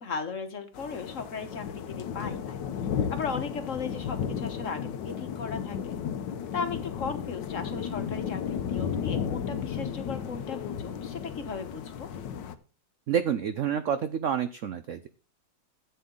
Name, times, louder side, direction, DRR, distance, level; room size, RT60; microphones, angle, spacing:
voice 1, 0.0-2.6 3.1-5.9 6.5-12.1, left 5 dB, 45° left, 7 dB, 1.4 m, -36 dB
sound 1, 0.7-12.5, left 8 dB, 70° left, 1.4 m, -34 dB
voice 2, 13.1-15.1, right 8 dB, 80° right, 11 dB, 0.6 m, -28 dB
13.0 x 8.1 x 3.8 m, 0.37 s
omnidirectional pair, 2.1 m